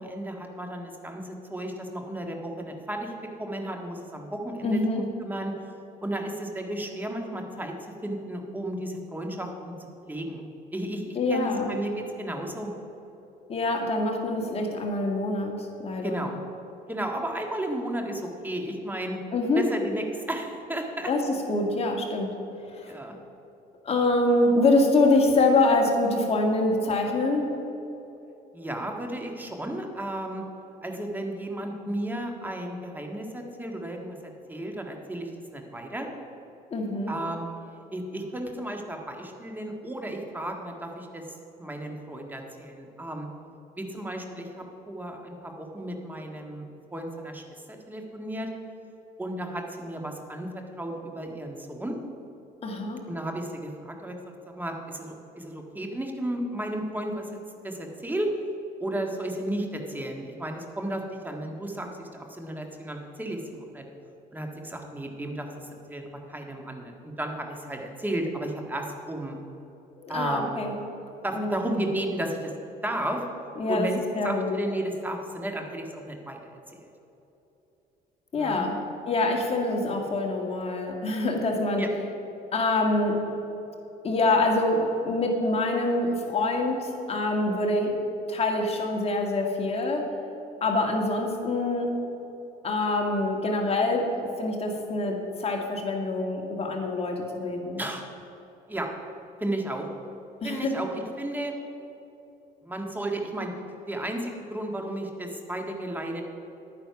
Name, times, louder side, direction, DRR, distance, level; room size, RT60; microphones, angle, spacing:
voice 1, 0.0-3.1 3.4-5.7 6.0-7.7 8.0-10.5 10.7-12.7 16.0-16.4 16.9-19.2 19.6-21.1 22.9-23.2 28.5-30.4 30.8-36.1 37.1-37.5 37.9-43.3 43.8-48.5 49.2-52.0 53.1-57.3 57.6-58.3 58.8-63.8 64.3-69.4 70.1-70.6 71.2-72.5 72.8-73.2 73.7-74.0 74.2-76.4 76.7-76.9 78.3-78.6 81.8-81.9 97.8-98.0 98.7-98.9 99.4-99.9 100.4-101.6 102.6-103.5 103.9-106.2, right 1 dB, 10° right, 2 dB, 1.7 m, -33 dB
voice 2, 4.6-5.0 11.2-11.7 13.5-16.2 19.3-19.6 21.1-22.3 22.7-22.9 23.8-27.5 36.7-37.1 52.6-53.0 70.0-70.8 71.3-71.6 73.6-74.5 78.3-78.8 79.1-81.8 82.5-83.2 84.0-87.9 88.3-90.1 90.6-91.9 92.6-97.8 100.4-100.7, left 2 dB, 35° left, 1 dB, 1.9 m, -25 dB
11.0 x 9.5 x 5.8 m, 3.0 s
cardioid pair, 110°, 17 cm